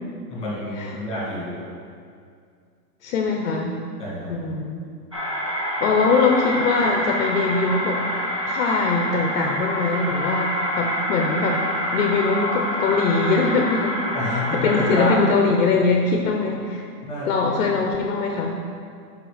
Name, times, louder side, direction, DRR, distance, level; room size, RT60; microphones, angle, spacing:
voice 1, 0.3-1.6 4.0-4.3 14.1-15.2 17.0-17.5, left 1 dB, 10° left, -6 dB, 2.1 m, -28 dB
voice 2, 3.0-3.8 4.3-4.8 5.8-8.0 8.5-11.6 11.9-14.0 14.2-16.8 17.2-18.6, left 4 dB, 50° left, 2 dB, 0.8 m, -22 dB
sound 1, 5.1-15.2, equal, 25° right, 0.3 m, -26 dB
7.7 x 5.6 x 5.0 m, 2.3 s
supercardioid pair, 170°, 50 cm